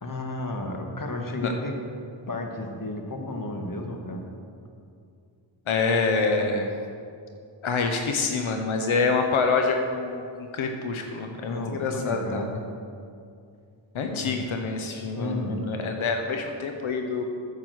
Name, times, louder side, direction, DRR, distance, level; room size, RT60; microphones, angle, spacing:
voice 1, 0.0-1.7 2.3-4.2 11.4-12.6 14.1-14.5 15.2-15.7, left 2 dB, 45° left, 3 dB, 1.5 m, -32 dB
voice 2, 5.7-6.7 7.6-10.2 10.5-12.5 13.9-17.2, left 4 dB, 85° left, 4 dB, 0.9 m, -26 dB
9.1 x 7.5 x 6.3 m, 2.4 s
cardioid pair, 60°, 47 cm